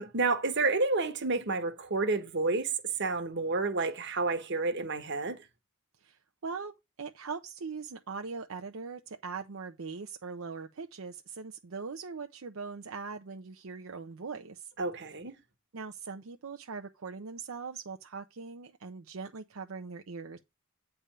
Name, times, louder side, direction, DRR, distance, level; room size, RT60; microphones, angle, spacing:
voice 1, 0.0-2.7 3.0-5.4 14.8-15.3, right 3 dB, 55° right, 1.2 m, -30 dB
voice 2, 6.0-14.7 15.7-20.4, right 5 dB, 75° right, 0.6 m, -41 dB
8.7 x 3.5 x 6.7 m
head